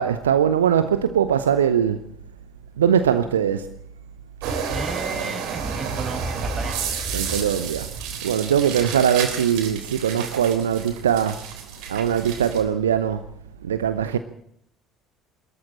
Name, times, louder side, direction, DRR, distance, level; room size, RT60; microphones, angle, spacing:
voice 1, 0.0-2.0 2.8-3.7 7.1-11.4 11.9-13.3 13.6-14.2, right 8 dB, 75° right, 0.8 m, -21 dB
sound 1, 4.4-12.6, right 5 dB, 60° right, 3.4 m, -31 dB
voice 2, 4.7-6.9, right 3 dB, 25° right, 5.4 m, -33 dB
22.0 x 14.0 x 8.7 m
figure-of-eight pair, 55°, 0 cm